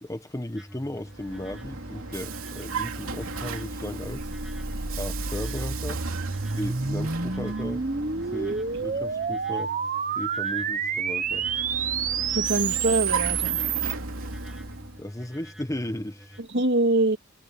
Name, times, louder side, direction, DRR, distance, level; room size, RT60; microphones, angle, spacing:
voice 1, 0.0-4.3 5.0-6.0 6.5-7.9 8.3-9.7 10.2-11.5 15.0-16.4, left 1 dB, 15° left, 1.4 m, -35 dB
sound 1, 0.6-16.4, equal, ahead, 3.5 m, -47 dB
Vehicle, 1.0-9.5 11.2-15.0, right 4 dB, 85° right, 2.9 m, -36 dB
sound 2, 4.0-13.9, right 6 dB, 40° right, 1.0 m, -29 dB
voice 2, 12.3-13.6 16.5-17.2, right 2 dB, 60° right, 2.8 m, -23 dB
head